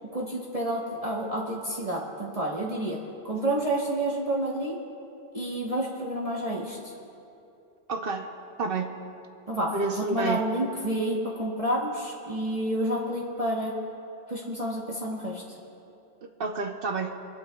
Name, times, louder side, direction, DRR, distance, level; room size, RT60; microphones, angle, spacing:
voice 1, 0.0-3.0 3.2-4.8 5.3-6.8 9.5-13.7 14.3-15.4, right 1 dB, 35° right, -4 dB, 1.2 m, -29 dB
voice 2, 7.9-8.3 8.6-9.0 9.7-10.4 16.2-17.2, right 4 dB, 60° right, 5 dB, 0.9 m, -29 dB
26.0 x 12.0 x 2.3 m, 2.7 s
omnidirectional pair, 1.1 m